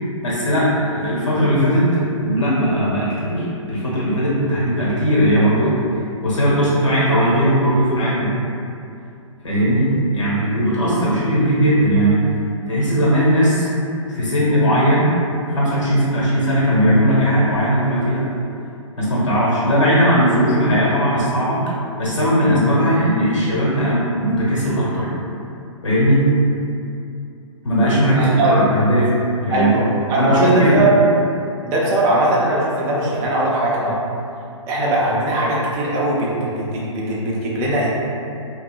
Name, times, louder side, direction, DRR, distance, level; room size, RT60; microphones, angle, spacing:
voice 1, 0.2-5.8 6.2-8.3 9.4-12.2 12.7-13.7 14.1-15.1 15.5-18.2 19.0-21.6 22.0-25.1 25.8-26.2 27.6-29.1 29.4-29.7 30.1-30.8, equal, 65° left, -7 dB, 1.1 m, -18 dB
voice 2, 28.1-28.6 29.5-30.9 31.7-34.0 34.7-37.9, right 1 dB, 15° right, -5 dB, 0.3 m, -20 dB
2.7 x 2.3 x 2.4 m, 2.6 s
figure-of-eight pair, 120°, 17 cm